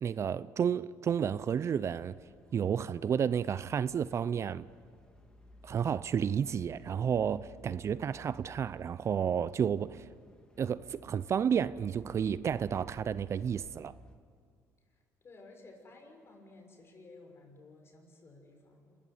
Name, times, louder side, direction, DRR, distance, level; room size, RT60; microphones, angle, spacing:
voice 1, 0.0-2.2 2.5-4.7 5.6-10.0 10.6-13.9, right 8 dB, 45° right, 0.6 m, -31 dB
sound 1, 1.1-14.2, equal, 15° left, 3.2 m, -57 dB
voice 2, 15.2-19.0, left 2 dB, 40° left, 6.4 m, -54 dB
27.0 x 15.5 x 9.3 m
supercardioid pair, 80°, 7 cm